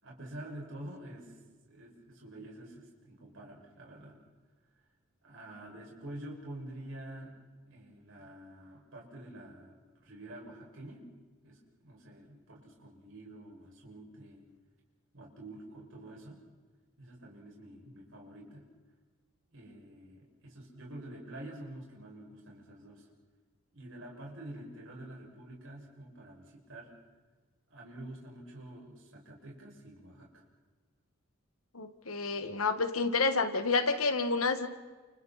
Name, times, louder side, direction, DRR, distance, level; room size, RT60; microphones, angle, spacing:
voice 1, 0.0-1.3 1.6-4.2 5.2-7.4 7.7-11.1 11.4-14.4 15.1-16.4 17.0-18.6 19.5-23.1 23.7-26.9 27.7-30.4, right 1 dB, 65° right, -2 dB, 6.4 m, -48 dB
voice 2, 31.7-34.7, left 4 dB, 85° left, 8 dB, 1.8 m, -29 dB
29.5 x 29.5 x 4.3 m, 1.3 s
head